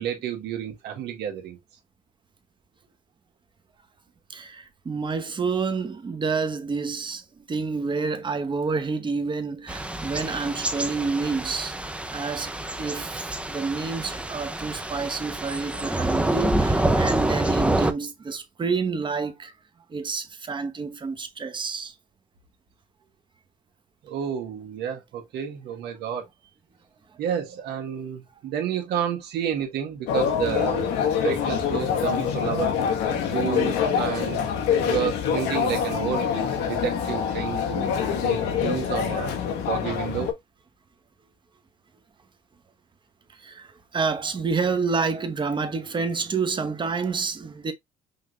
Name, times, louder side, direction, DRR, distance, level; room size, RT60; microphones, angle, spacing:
voice 1, 0.0-1.6 24.0-26.3 27.2-30.9 31.2-32.7 33.3-34.4 34.8-39.4 39.7-40.3, right 8 dB, 75° right, 1.7 m, -30 dB
voice 2, 4.3-11.8 12.1-19.5 19.9-21.9 43.3-47.7, right 4 dB, 30° right, 1.0 m, -29 dB
Thunder / Rain, 9.7-17.9, right 1 dB, 5° right, 0.6 m, -27 dB
sound 1, 30.1-40.3, left 7 dB, 90° left, 1.3 m, -25 dB
5.7 x 2.6 x 3.2 m
cardioid pair, 110°, 17 cm